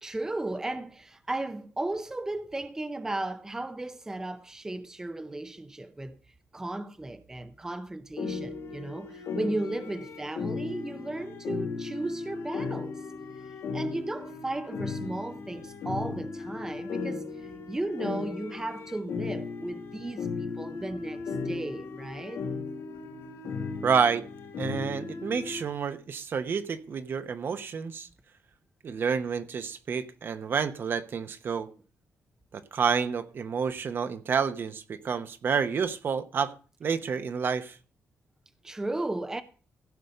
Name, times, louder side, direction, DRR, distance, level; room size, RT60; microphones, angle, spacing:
voice 1, 0.0-6.2 6.5-12.9 13.7-22.5 38.6-39.4, right 2 dB, 10° right, 0.6 m, -35 dB
sound 1, 8.2-25.6, left 4 dB, 75° left, 2.7 m, -36 dB
voice 2, 23.8-24.3 24.6-28.1 28.8-31.7 32.5-36.5 36.8-37.8, right 6 dB, 50° right, 0.9 m, -29 dB
15.5 x 5.4 x 6.5 m
cardioid pair, 135°, 5 cm